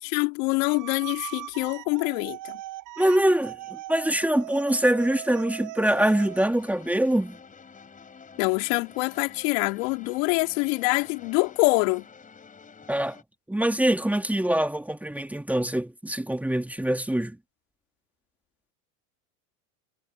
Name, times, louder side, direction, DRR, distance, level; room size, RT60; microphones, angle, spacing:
voice 1, 0.0-2.6 8.4-12.1, left 28 dB, 65° left, 3.3 m, -25 dB
sound 1, 0.6-6.5, right 16 dB, 45° right, 7.2 m, -40 dB
voice 2, 3.0-7.4 12.9-13.2 13.5-17.4, right 1 dB, 5° right, 2.4 m, -24 dB
sound 2, 5.9-13.2, left 5 dB, 20° left, 4.6 m, -49 dB
supercardioid pair, 120°, 42 cm